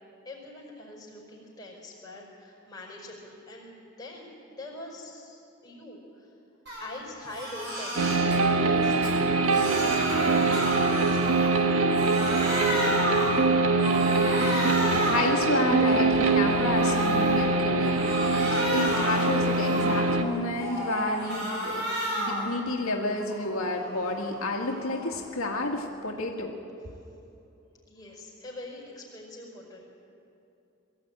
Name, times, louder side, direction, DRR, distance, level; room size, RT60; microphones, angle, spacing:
voice 1, 0.2-6.3 6.8-9.6 10.1-13.4 27.9-29.8, left 1 dB, 20° left, -4 dB, 4.9 m, -44 dB
Crying sobbing, 6.7-6.9 7.2-8.4 8.8-11.6 11.9-13.4 13.8-15.3 15.7-17.4 17.8-20.1 20.5-22.5 22.8-25.2, equal, 55° right, 6.9 m, -32 dB
sound 1, 8.0-20.2, right 3 dB, 90° right, 1.4 m, -24 dB
voice 2, 14.9-21.8 22.1-26.6, left 2 dB, 85° left, 0 dB, 2.0 m, -30 dB
22.5 x 14.5 x 8.9 m, 2.9 s
head